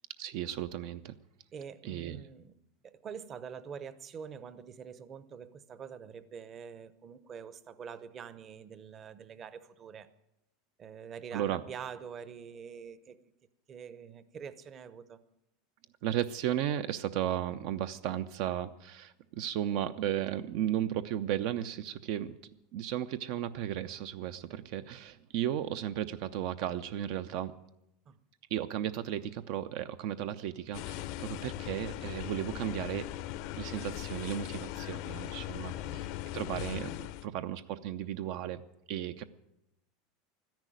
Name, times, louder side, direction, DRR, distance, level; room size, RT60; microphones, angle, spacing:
voice 1, 0.2-1.1 1.8-2.3 11.3-11.6 16.0-22.3 22.7-27.5 28.5-33.2 33.6-36.1 36.3-38.6 38.9-39.2, right 11 dB, 60° right, 11 dB, 0.6 m, -35 dB
voice 2, 1.5-2.6 2.8-10.1 10.8-13.2 13.7-15.2 28.1-28.2 35.7-36.0, right 7 dB, 30° right, 15 dB, 0.8 m, -45 dB
sound 1, 30.7-37.3, left 14 dB, 60° left, 0.6 m, -39 dB
13.0 x 10.5 x 9.1 m, 0.86 s
supercardioid pair, 145°, 0 cm